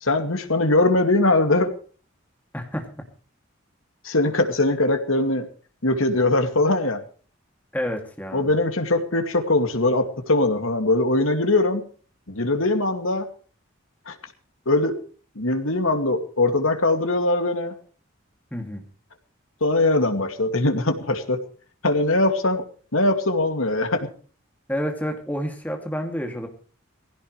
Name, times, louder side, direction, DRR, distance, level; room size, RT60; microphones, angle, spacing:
voice 1, 0.0-1.7 4.0-5.5 5.8-7.0 8.3-11.8 12.3-13.3 14.1-14.2 14.7-15.0 15.4-17.7 19.6-21.4 21.8-22.6 22.9-24.1, left 2 dB, 80° left, 6 dB, 2.3 m, -21 dB
voice 2, 2.5-2.9 7.7-8.5 18.5-18.8 24.7-26.5, equal, 10° left, 3 dB, 2.6 m, -29 dB
20.0 x 16.5 x 3.3 m, 0.41 s
head